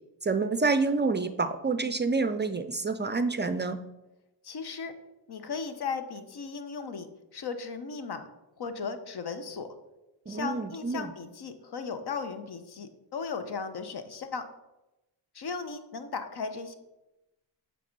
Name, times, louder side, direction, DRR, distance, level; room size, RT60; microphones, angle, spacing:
voice 1, 0.2-3.8 10.3-11.1, right 3 dB, 25° right, 9 dB, 0.4 m, -28 dB
voice 2, 4.4-4.9 5.3-7.1 7.3-8.3 8.6-9.7 10.3-14.4 15.3-16.8, left 5 dB, 55° left, 9 dB, 0.9 m, -36 dB
8.3 x 3.6 x 5.2 m, 0.99 s
cardioid pair, 60°, 47 cm